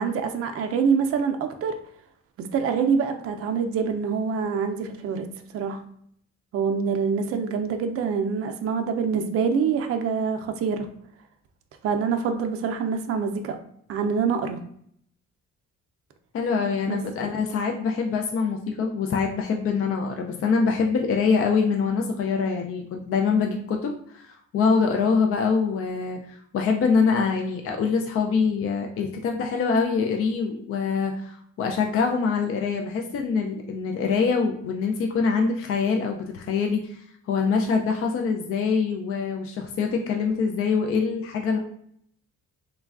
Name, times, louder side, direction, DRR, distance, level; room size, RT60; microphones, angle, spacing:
voice 1, 0.0-1.8 2.4-5.3 5.5-5.8 6.5-10.9 11.8-13.6 13.9-14.6 16.9-17.0, right 6 dB, 50° right, 6 dB, 0.4 m, -25 dB
voice 2, 16.3-41.6, left 5 dB, 50° left, 3 dB, 0.4 m, -24 dB
3.2 x 2.2 x 2.3 m, 0.67 s
cardioid pair, 90°, 30 cm